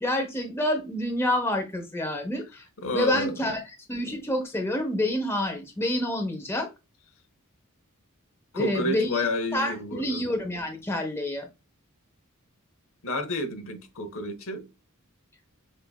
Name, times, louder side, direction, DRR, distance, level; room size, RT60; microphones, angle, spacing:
voice 1, 0.0-2.7 2.9-3.6 3.9-6.7 8.5-9.2 9.5-11.5, left 1 dB, 10° left, 0.9 m, -28 dB
voice 2, 2.8-3.6 8.5-10.4 13.0-14.7, left 1 dB, 65° left, 0.8 m, -30 dB
6.5 x 2.6 x 2.3 m
head